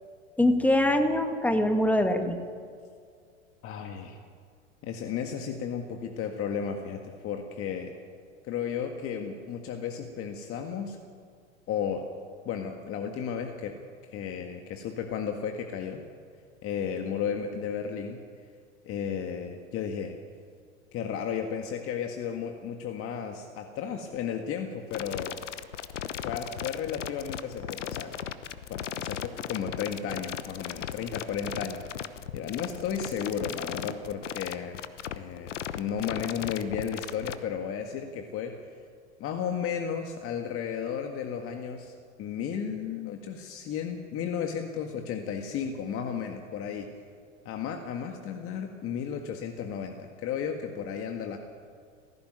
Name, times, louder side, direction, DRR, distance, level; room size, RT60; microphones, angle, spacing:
voice 1, 0.4-2.4, left 1 dB, 5° left, 6 dB, 2.0 m, -23 dB
voice 2, 3.6-4.2 4.8-7.9 8.4-11.0 11.7-12.1 12.5-13.8 14.1-16.0 16.6-18.2 18.8-20.2 20.9-25.4 26.2-28.2 28.7-31.8 32.3-34.8 35.1-38.6 39.2-46.9 47.5-51.4, left 7 dB, 40° left, 4 dB, 1.8 m, -34 dB
sound 1, 24.9-37.3, left 9 dB, 80° left, 1.1 m, -36 dB
18.0 x 15.5 x 9.2 m, 2.2 s
hypercardioid pair, 95°, 36 cm